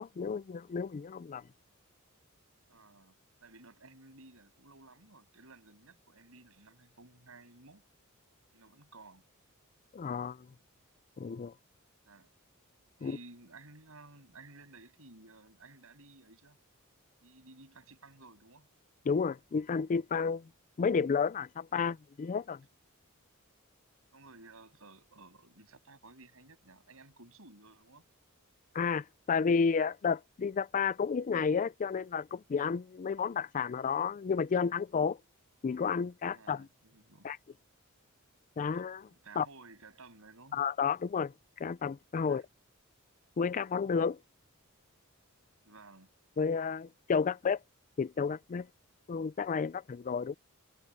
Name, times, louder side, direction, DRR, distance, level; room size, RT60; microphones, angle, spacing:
voice 1, 0.0-1.4 9.9-10.5 11.2-11.5 13.0-13.2 19.1-20.5 20.8-22.6 28.7-35.2 35.6-36.7 37.2-37.4 38.6-39.1 39.4-39.5 40.5-41.3 41.6-42.4 43.4-44.2 46.4-47.6 48.0-48.7 49.1-50.3, left 5 dB, 35° left, 0.4 m, -31 dB
voice 2, 2.7-7.8 8.5-9.2 12.0-12.3 13.0-16.6 17.2-18.7 21.7-21.9 24.1-28.0 36.3-37.3 39.1-40.6 42.2-42.4 45.6-46.1 47.3-47.4, right 3 dB, 70° right, 7.5 m, -55 dB
head